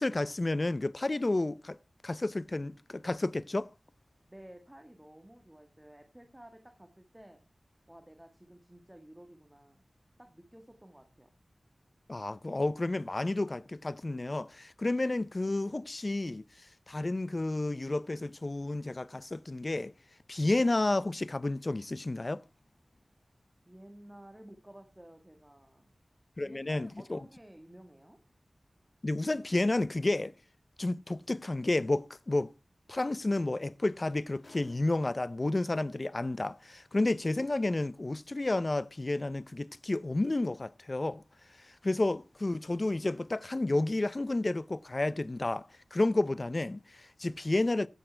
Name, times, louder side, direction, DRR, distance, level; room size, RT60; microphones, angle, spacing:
voice 1, 0.0-1.8 2.0-3.7 12.1-19.9 20.3-22.4 26.4-27.2 29.0-30.3 30.8-32.5 32.9-41.2 41.5-47.9, left 2 dB, 40° left, 0.5 m, -31 dB
voice 2, 4.3-7.4 7.9-9.8 10.2-11.3 23.6-26.0 26.4-28.2 41.8-42.0, right 1 dB, 15° right, 1.4 m, -53 dB
sound 1, 31.2-31.3 32.9-33.0 33.3-35.5 36.4-36.5, left 2 dB, 65° left, 2.0 m, -60 dB
15.5 x 6.4 x 4.4 m
wide cardioid pair, 80°, 0 cm